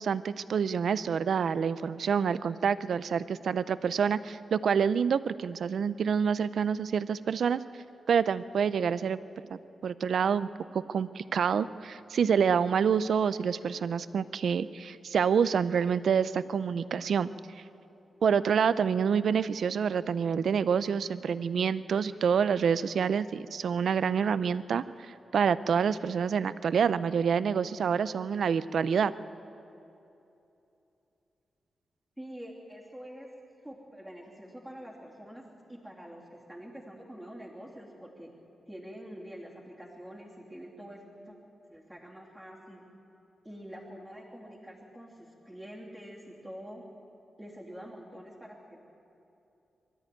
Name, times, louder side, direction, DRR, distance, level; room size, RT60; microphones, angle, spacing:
voice 1, 0.0-7.6 8.1-9.2 9.5-10.5 10.7-17.3 18.2-29.1, right 7 dB, 65° right, 15 dB, 0.5 m, -27 dB
voice 2, 32.2-33.3 33.6-35.4 35.7-38.3 38.7-41.4 41.7-42.9 43.4-46.8 47.4-48.8, equal, ahead, -3 dB, 2.8 m, -46 dB
22.5 x 13.5 x 9.1 m, 2.9 s
wide cardioid pair, 170°, 0 cm